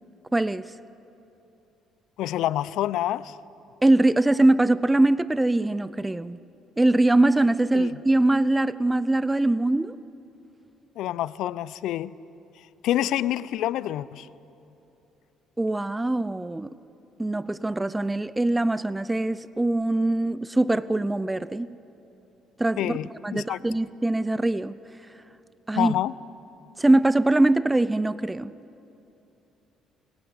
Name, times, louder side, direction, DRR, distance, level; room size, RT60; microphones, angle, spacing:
voice 1, 0.3-0.7 3.8-6.4 6.8-10.0 15.6-16.8 17.2-21.7 22.6-23.0 23.2-24.8 25.7-25.9 26.8-28.5, right 2 dB, 10° right, 0.5 m, -22 dB
voice 2, 2.2-3.4 7.7-7.9 11.0-12.1 12.8-14.3 22.8-23.6 25.8-26.1, left 13 dB, 75° left, 0.5 m, -27 dB
23.5 x 17.0 x 9.7 m
cardioid pair, 105°, 0 cm